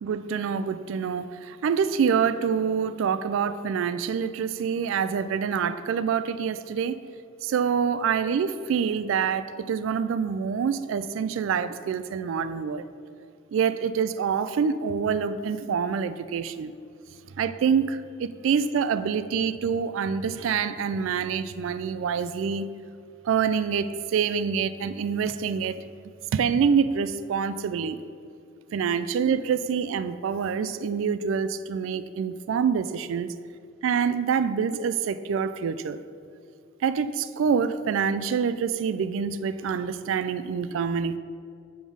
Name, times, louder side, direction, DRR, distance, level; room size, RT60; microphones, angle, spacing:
voice 1, 0.0-7.0 7.4-12.9 13.5-16.7 17.4-22.7 23.3-25.8 26.3-28.0 28.7-33.3 33.8-36.0 36.8-41.2, right 6 dB, 75° right, 12 dB, 0.3 m, -26 dB
7.2 x 3.6 x 6.0 m, 2.4 s
head